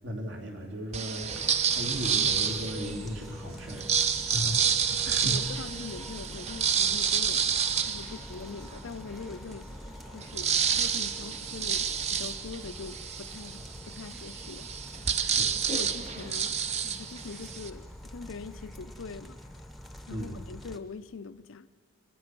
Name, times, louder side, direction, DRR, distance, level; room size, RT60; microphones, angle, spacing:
voice 1, 0.0-1.3 1.7-3.9 4.2-5.4 15.2-15.5 20.1-20.4, equal, 70° right, 0 dB, 3.1 m, -36 dB
sound 1, 0.9-3.1 3.7-8.9 9.4-9.5 9.7-17.7, right 7 dB, 35° right, 0.6 m, -29 dB
sound 2, 1.3-20.8, equal, ahead, 0.8 m, -45 dB
voice 2, 4.9-7.5 7.9-9.7 10.1-14.7 15.7-16.6 17.0-19.4 20.1-21.7, left 4 dB, 90° left, 12 dB, 0.6 m, -42 dB
25.0 x 19.5 x 6.1 m, 2.3 s
head